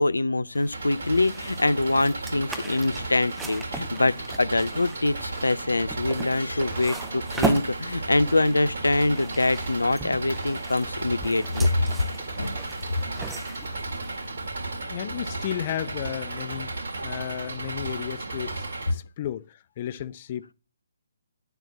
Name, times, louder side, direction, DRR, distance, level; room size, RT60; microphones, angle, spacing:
voice 1, 0.0-11.8 12.4-12.6, left 2 dB, 75° left, 0.7 m, -24 dB
Book Put into Old Backpack, 0.5-14.8, right 2 dB, 5° right, 0.9 m, -38 dB
Engine, 0.7-18.9, right 2 dB, 60° right, 2.1 m, -34 dB
voice 2, 14.8-16.7 17.0-20.5, left 11 dB, 35° left, 0.6 m, -33 dB
10.0 x 6.8 x 7.4 m
figure-of-eight pair, 135°, 0 cm